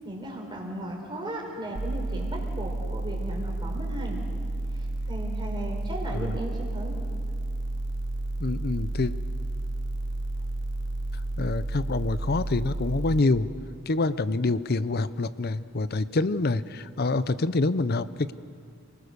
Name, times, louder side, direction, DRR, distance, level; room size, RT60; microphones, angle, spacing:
voice 1, 0.0-4.2 4.7-6.9, right 1 dB, 20° right, 0 dB, 4.3 m, -36 dB
sound 1, 1.8-13.2, right 2 dB, 55° right, 0.9 m, -31 dB
voice 2, 8.4-9.1 11.4-13.5 13.9-18.3, left 3 dB, 45° left, 15 dB, 0.6 m, -26 dB
29.5 x 19.5 x 6.7 m, 2.3 s
head